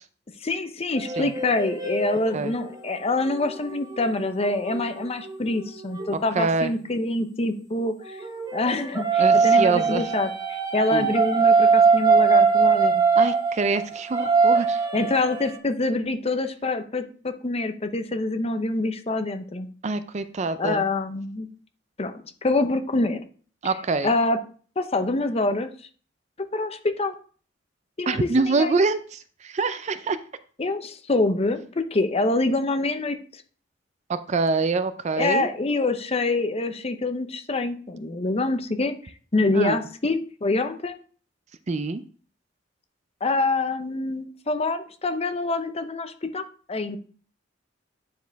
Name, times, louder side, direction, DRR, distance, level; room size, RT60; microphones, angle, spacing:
voice 1, 0.4-8.2 8.5-13.0 14.9-19.7 20.6-21.5 22.0-23.2 24.0-24.4 24.8-25.7 26.4-27.2 28.0-28.8 30.6-33.4 35.2-39.0 39.3-41.0 43.2-47.0, left 2 dB, 30° left, 8 dB, 0.7 m, -26 dB
sound 1, 1.0-6.1 8.0-15.6, right 5 dB, 20° right, 0.9 m, -22 dB
voice 2, 6.4-6.7 9.2-10.0 10.9-11.1 13.2-14.8 19.8-20.8 23.6-24.1 28.1-30.2 34.1-35.5 39.5-39.8 41.7-42.0, right 3 dB, 35° right, 12 dB, 0.4 m, -25 dB
9.3 x 4.8 x 3.4 m, 0.43 s
head